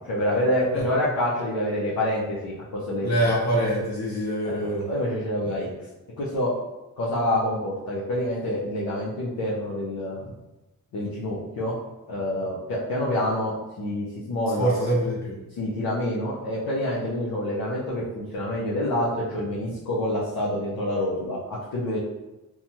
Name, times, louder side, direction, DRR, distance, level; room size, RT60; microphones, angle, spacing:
voice 1, 0.1-2.5 2.9-3.3 4.4-4.6 4.9-5.7 6.2-6.5 7.0-10.3 10.9-11.8 12.1-14.7 15.6-22.0, left 1 dB, 75° left, -7 dB, 0.7 m, -27 dB
voice 2, 3.0-4.9 14.6-15.4, right 1 dB, 50° left, -6 dB, 1.3 m, -24 dB
2.8 x 2.3 x 2.7 m, 1.0 s
cardioid pair, 65°, 36 cm